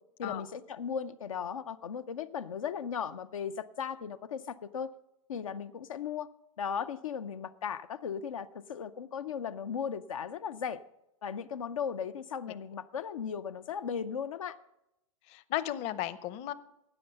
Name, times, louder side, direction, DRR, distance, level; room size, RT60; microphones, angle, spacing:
voice 1, 0.2-4.9 5.3-6.3 6.6-10.8 11.2-14.6, left 7 dB, 90° left, 10 dB, 0.5 m, -37 dB
voice 2, 15.3-16.5, left 13 dB, 40° left, 16 dB, 0.7 m, -35 dB
13.5 x 8.9 x 5.3 m, 0.88 s
hypercardioid pair, 110°, 17 cm